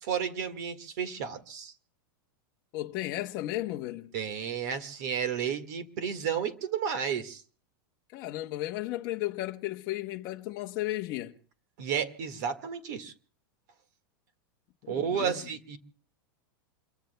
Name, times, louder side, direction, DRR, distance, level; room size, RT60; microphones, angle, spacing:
voice 1, 0.0-1.7 4.1-7.4 11.8-13.1 14.9-15.8, right 8 dB, 50° right, 1.7 m, -32 dB
voice 2, 2.7-4.1 8.1-11.3 14.8-15.4, left 16 dB, 35° left, 0.8 m, -34 dB
28.0 x 23.0 x 2.2 m
supercardioid pair, 175°, 12 cm